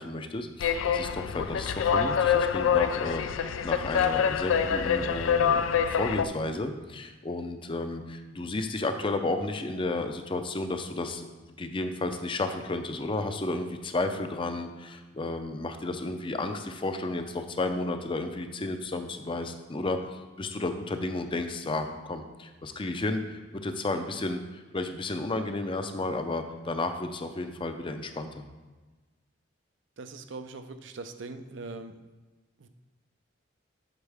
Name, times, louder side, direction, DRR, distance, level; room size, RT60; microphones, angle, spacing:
voice 1, 0.0-3.2 3.6-5.6 5.9-11.3 11.6-28.4, left 2 dB, 25° left, 7 dB, 0.5 m, -32 dB
sound 1, 0.6-6.2, left 7 dB, 85° left, 0.4 m, -26 dB
voice 2, 30.0-31.9 32.6-32.7, right 3 dB, 70° right, 8 dB, 0.5 m, -41 dB
8.1 x 6.3 x 3.5 m, 1.2 s
head